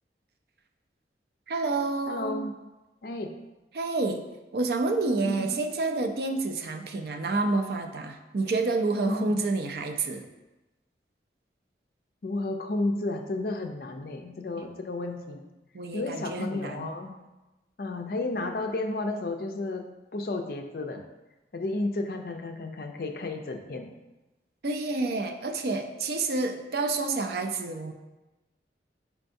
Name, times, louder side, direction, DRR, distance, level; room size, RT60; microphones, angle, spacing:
voice 1, 1.5-2.5 3.7-4.2 4.5-10.2 14.6-14.7 15.7-16.9 24.6-27.9, right 3 dB, 60° right, 5 dB, 0.4 m, -29 dB
voice 2, 2.1-2.5 3.0-3.3 5.2-5.5 9.1-9.4 12.2-15.4 15.9-17.1 17.8-19.9 20.1-21.0 21.5-23.9, left 2 dB, 55° left, 5 dB, 0.4 m, -32 dB
4.5 x 4.4 x 2.6 m, 1.1 s
head